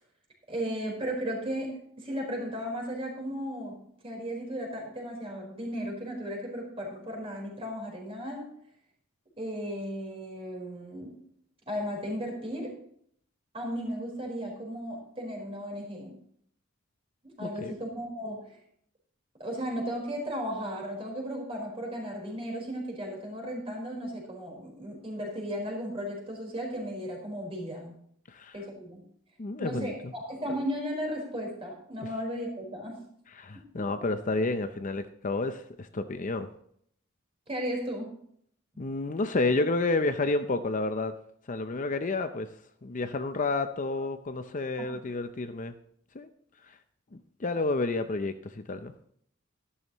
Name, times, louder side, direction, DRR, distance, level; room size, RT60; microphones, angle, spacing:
voice 1, 0.5-3.8 4.0-8.5 9.4-11.2 11.7-12.8 13.5-16.2 17.2-18.6 19.4-28.0 28.5-29.0 29.6-33.0 33.5-34.1 37.5-38.1 44.8-44.9, equal, 30° right, -1 dB, 4.4 m, -35 dB
voice 2, 17.4-17.7 28.3-28.5 29.4-30.1 33.4-36.5 38.8-41.1 41.5-42.5 42.8-45.7 46.1-46.3 47.1-48.9, left 3 dB, 40° left, 9 dB, 0.6 m, -30 dB
13.0 x 12.0 x 3.1 m, 0.66 s
head